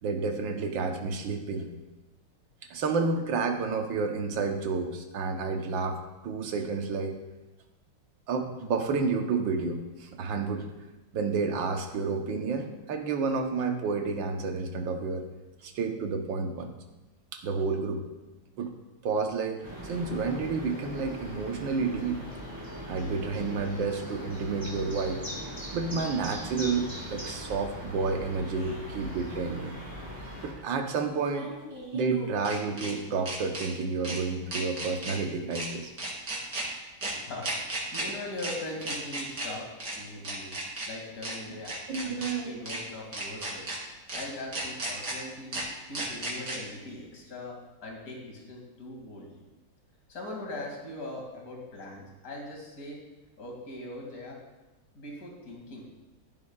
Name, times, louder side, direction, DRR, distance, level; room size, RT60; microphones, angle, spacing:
voice 1, 0.0-1.7 2.7-6.0 6.2-7.2 8.3-10.7 11.1-15.2 15.6-16.7 17.3-18.0 18.6-18.7 19.0-22.2 22.9-25.2 25.7-29.8 30.4-31.5 31.9-35.9 41.9-42.6, right 4 dB, 65° right, 4 dB, 1.7 m, -30 dB
sound 1, 19.6-30.5, equal, 10° right, 4.4 m, -40 dB
sound 2, 28.6-28.7 31.1-32.9 33.3-33.7 34.0-34.2 34.5-35.2 35.5-35.7 36.0-36.6 37.0-37.1 37.4-38.0 38.4-38.5 38.8-39.5 39.8-39.9 40.2-40.9 41.2-41.3 41.6-42.3 42.7-42.8 43.1-43.8 44.1-44.2 44.5-45.1 45.5-45.6 45.9-46.6, right 2 dB, 50° right, 3.4 m, -34 dB
voice 2, 37.3-40.5 40.9-43.6 44.1-45.6 45.9-47.6 47.8-49.3 50.1-53.0 53.4-54.4 54.9-55.8, left 1 dB, 40° left, -1 dB, 2.8 m, -41 dB
14.5 x 11.5 x 2.4 m, 1.1 s
omnidirectional pair, 2.3 m